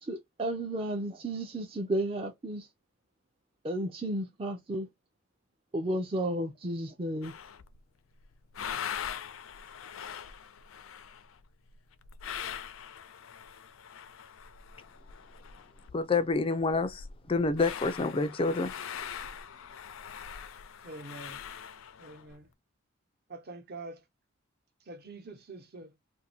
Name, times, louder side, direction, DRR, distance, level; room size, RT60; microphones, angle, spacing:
voice 1, 0.0-2.7 3.6-4.9 5.7-7.3, right 1 dB, 30° right, 0.5 m, -33 dB
sound 1, 7.2-7.8 8.2-16.0 16.3-16.4 16.6-22.4, left 8 dB, 85° left, 0.5 m, -42 dB
voice 2, 15.9-18.7, left 3 dB, 25° left, 0.4 m, -28 dB
voice 3, 20.8-21.4 22.0-22.5 23.3-24.0 24.8-25.9, right 2 dB, 50° right, 1.0 m, -45 dB
2.6 x 2.6 x 4.2 m
head